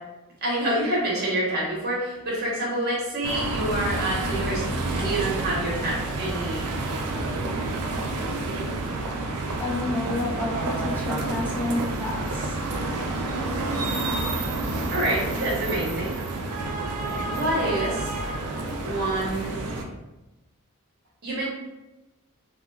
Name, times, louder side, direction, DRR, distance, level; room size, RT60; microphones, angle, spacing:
voice 1, 0.4-6.8 7.2-7.3 14.9-16.2 17.3-18.1 18.8-19.6 21.2-21.5, right 1 dB, 45° right, -4 dB, 1.0 m, -27 dB
sound 1, 3.2-19.8, right 2 dB, 80° right, 0.4 m, -29 dB
voice 2, 9.6-12.6, left 2 dB, 10° left, -6 dB, 0.6 m, -30 dB
3.6 x 2.2 x 2.3 m, 1.0 s
head